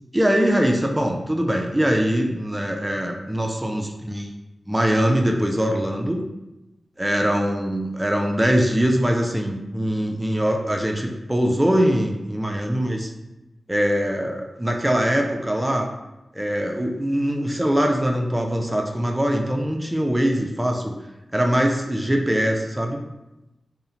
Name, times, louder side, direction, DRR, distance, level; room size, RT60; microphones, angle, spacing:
voice 1, 0.1-4.3 4.7-6.2 7.0-13.1 13.7-15.9 16.3-21.0 21.3-23.0, equal, 15° right, 2 dB, 0.3 m, -22 dB
2.7 x 2.0 x 2.5 m, 0.97 s
cardioid pair, 55°, 0 cm